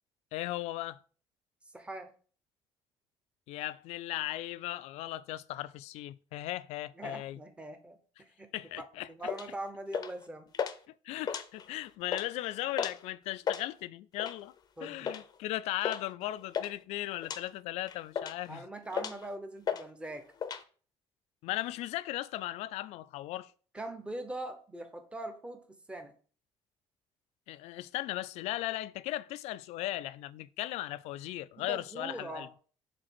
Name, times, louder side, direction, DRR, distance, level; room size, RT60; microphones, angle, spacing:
voice 1, 0.3-1.0 3.5-7.4 8.5-9.1 11.0-14.5 14.8-18.6 21.4-23.5 27.5-32.5, left 15 dB, 90° left, 0.4 m, -37 dB
voice 2, 1.7-2.1 7.0-8.5 8.8-10.5 14.8-15.1 18.5-20.3 23.7-26.1 31.6-32.5, right 1 dB, 10° right, 0.9 m, -42 dB
sound 1, 9.3-9.5 9.9-10.2 10.5-10.8 11.2-11.7 12.0-12.3 12.8-13.0 13.3-13.6 14.2-14.5 15.1-15.3 15.8-16.0 16.3-16.7 17.2-17.4 17.9-18.5 18.9-19.3 19.7-19.9 20.1-20.6, left 7 dB, 35° left, 0.6 m, -34 dB
5.1 x 3.8 x 5.9 m
cardioid pair, 135°, 11 cm